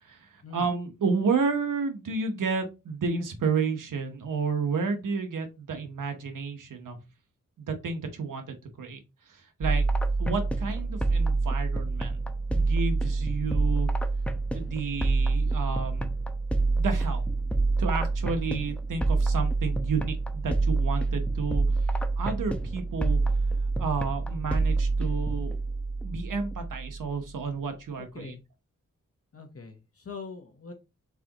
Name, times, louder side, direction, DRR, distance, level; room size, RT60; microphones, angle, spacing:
voice 1, 0.0-7.0 7.6-9.0 9.3-9.9 10.2-12.2 12.5-13.9 14.5-16.1 16.7-17.2 17.8-21.6 22.2-23.2 23.8-25.6 26.0-28.3, right 5 dB, 85° right, 6 dB, 1.2 m, -31 dB
sound 1, 9.6-27.2, right 3 dB, 5° left, 0.8 m, -27 dB
voice 2, 28.0-28.4 29.3-30.7, left 4 dB, 50° left, 5 dB, 1.0 m, -43 dB
4.7 x 3.9 x 2.9 m, 0.26 s
cardioid pair, 65°, 31 cm